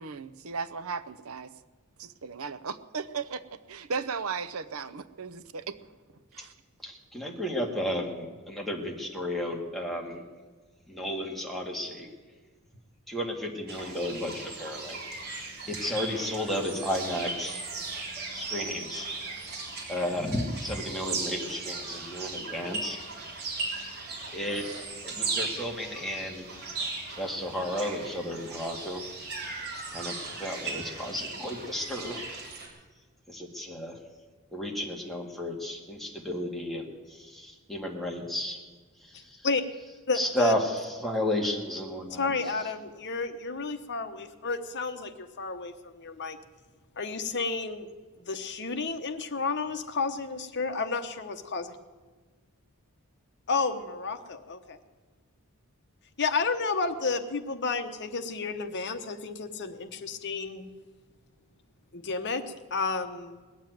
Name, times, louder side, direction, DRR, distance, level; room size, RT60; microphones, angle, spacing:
voice 1, 0.0-1.5 2.0-3.4 3.7-5.8 6.3-6.5, right 5 dB, 70° right, 13 dB, 0.7 m, -36 dB
voice 2, 6.8-10.2 10.9-12.1 13.1-15.3 15.7-17.6 18.3-19.1 19.9-23.0 24.3-24.7 25.0-26.5 27.2-29.0 29.9-32.3 33.3-34.0 34.5-38.6 39.0-39.5 40.1-42.3, equal, ahead, -1 dB, 1.9 m, -33 dB
sound 1, 13.7-32.7, right 3 dB, 45° right, 3.5 m, -37 dB
voice 3, 39.1-39.6 40.1-40.5 42.1-46.4 47.0-47.9 48.2-51.7 53.5-54.8 56.2-60.7 61.9-62.4 62.7-63.4, left 4 dB, 50° left, 8 dB, 1.1 m, -31 dB
19.5 x 7.4 x 9.2 m, 1.4 s
head